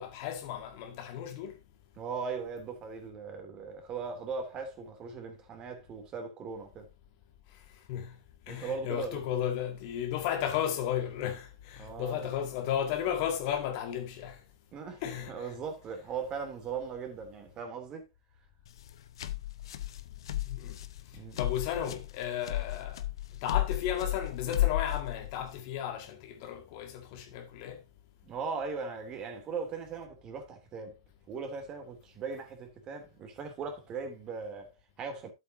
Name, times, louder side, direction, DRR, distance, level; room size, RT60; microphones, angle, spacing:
voice 1, 0.0-1.6 7.9-8.2 8.5-14.4 15.0-15.5 20.5-20.8 21.4-23.0 23.4-27.8, left 9 dB, 45° left, 1.8 m, -34 dB
voice 2, 2.0-6.9 8.5-9.2 11.8-12.3 14.7-18.1 21.1-21.4 28.2-31.0 31.3-35.3, right 5 dB, 30° right, 2.8 m, -39 dB
sound 1, 18.7-25.6, left 14 dB, 65° left, 0.9 m, -34 dB
12.0 x 7.9 x 2.7 m
hypercardioid pair, 110°, 3 cm